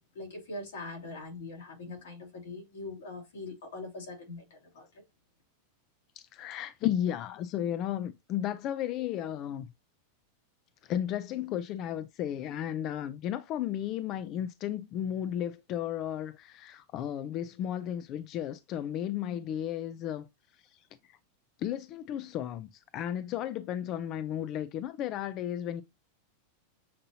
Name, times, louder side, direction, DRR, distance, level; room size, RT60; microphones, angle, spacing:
voice 1, 0.0-5.0, left 2 dB, 85° left, 2.4 m, -42 dB
voice 2, 6.2-9.7 10.8-20.3 20.7-20.8 21.1-21.2 21.6-25.8, left 11 dB, 35° left, 0.3 m, -34 dB
6.7 x 2.7 x 2.7 m
supercardioid pair, 150°, 0 cm